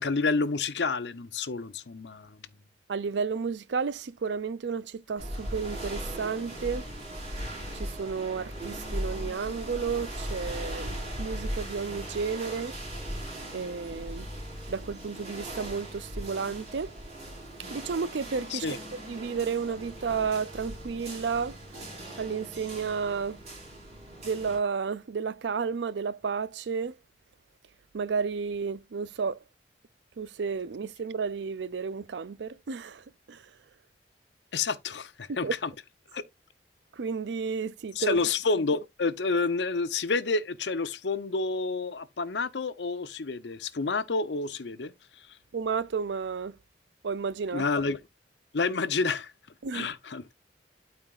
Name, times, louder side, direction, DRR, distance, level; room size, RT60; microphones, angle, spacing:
voice 1, 0.0-2.4 18.5-18.8 34.5-35.7 36.1-36.2 38.0-44.9 45.3-45.4 47.5-48.0 48.5-49.3 49.7-50.3, left 4 dB, 80° left, 0.7 m, -29 dB
voice 2, 2.9-6.9 7.7-12.7 13.5-14.3 14.7-16.9 17.7-21.6 22.2-23.4 24.2-26.9 27.9-29.4 30.2-33.5 35.4-35.5 36.9-38.2 45.5-46.6 47.0-47.6 49.6-49.9, right 5 dB, 80° right, 0.5 m, -32 dB
sound 1, 5.2-24.6, equal, 40° right, 4.2 m, -38 dB
12.5 x 4.4 x 2.4 m
head